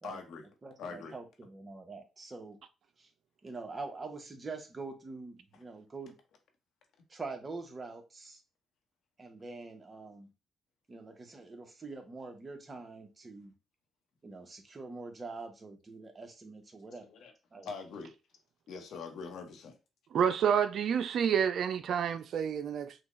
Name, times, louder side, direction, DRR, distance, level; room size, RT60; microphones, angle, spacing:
voice 1, 0.0-0.4 0.8-1.1 17.1-17.3 17.6-18.1 18.7-19.8, left 5 dB, 75° left, 1.2 m, -43 dB
voice 2, 0.6-2.6 3.0-3.1 3.4-6.1 7.1-8.4 9.2-10.3 10.9-13.5 14.2-17.1 17.5-17.7, right 3 dB, 30° right, 1.1 m, -44 dB
voice 3, 20.1-22.9, right 8 dB, 65° right, 0.5 m, -29 dB
6.2 x 2.3 x 3.1 m
cardioid pair, 90°, 0 cm